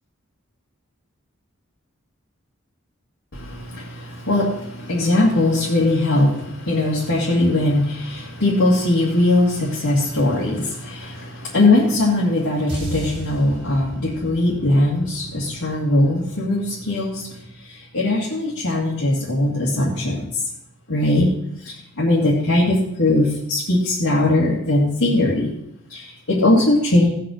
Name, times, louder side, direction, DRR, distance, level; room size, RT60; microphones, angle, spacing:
voice 1, 3.3-20.4 20.9-21.3 21.6-25.6 25.9-27.1, left 2 dB, 85° left, -5 dB, 2.2 m, -20 dB
sound 1, 12.7-17.0, right 1 dB, 25° right, 4.9 m, -36 dB
16.5 x 5.7 x 6.5 m, 0.81 s
head